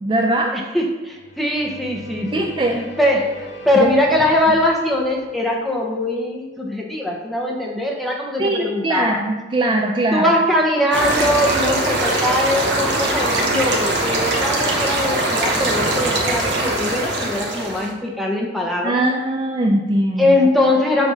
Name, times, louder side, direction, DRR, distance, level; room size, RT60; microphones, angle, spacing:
voice 1, 0.0-0.6 2.3-2.9 3.8-3.9 8.4-10.3 18.8-20.4, right 1 dB, 25° right, 1 dB, 0.3 m, -20 dB
voice 2, 0.5-2.5 3.0-9.2 10.1-19.0 20.2-21.1, left 1 dB, ahead, -1 dB, 0.7 m, -21 dB
sound 1, 1.1-5.8, equal, 65° left, 0.9 m, -39 dB
sound 2, 10.9-17.9, right 2 dB, 70° right, 0.9 m, -21 dB
7.0 x 2.6 x 5.6 m, 1.2 s
head